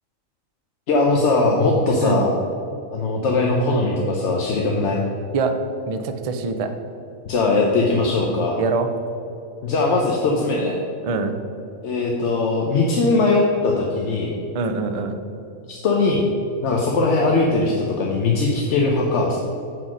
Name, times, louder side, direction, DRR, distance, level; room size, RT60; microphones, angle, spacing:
voice 1, 0.9-2.3 2.9-5.0 7.2-8.6 9.6-10.8 11.8-14.3 15.7-16.2 16.6-19.4, left 3 dB, 60° left, -1 dB, 1.0 m, -20 dB
voice 2, 5.9-6.7 8.6-8.9 11.0-11.3 14.5-15.2, right 4 dB, 65° right, 7 dB, 0.3 m, -24 dB
9.1 x 4.1 x 6.1 m, 2.7 s
omnidirectional pair, 1.5 m